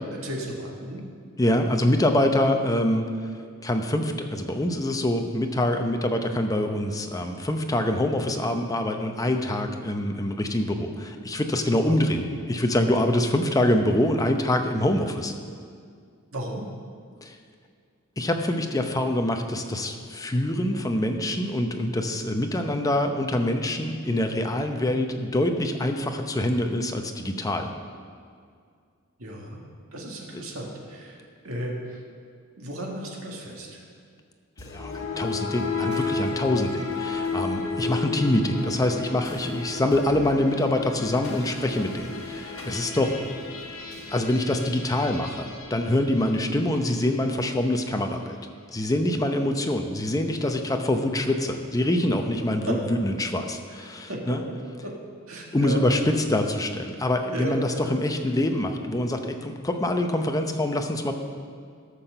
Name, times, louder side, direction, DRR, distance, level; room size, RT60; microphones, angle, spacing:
voice 1, 0.2-1.0 16.3-16.7 29.2-29.6 29.9-32.0 32.6-33.8 37.8-37.9 42.9-43.1 49.4-49.5 52.6-52.8 53.7-53.8 54.1-54.4 54.8-54.9 55.3-55.8 57.3-57.9, right 1 dB, 85° right, -2 dB, 1.8 m, -34 dB
voice 2, 1.4-3.1 3.6-15.3 17.2-17.4 18.2-27.7 34.7-43.1 44.1-48.4 48.7-54.4 55.5-61.1, left 1 dB, 15° left, 5 dB, 0.7 m, -25 dB
sound 1, 34.6-46.9, left 4 dB, 75° left, 1.4 m, -33 dB
13.0 x 5.9 x 6.7 m, 2.1 s
head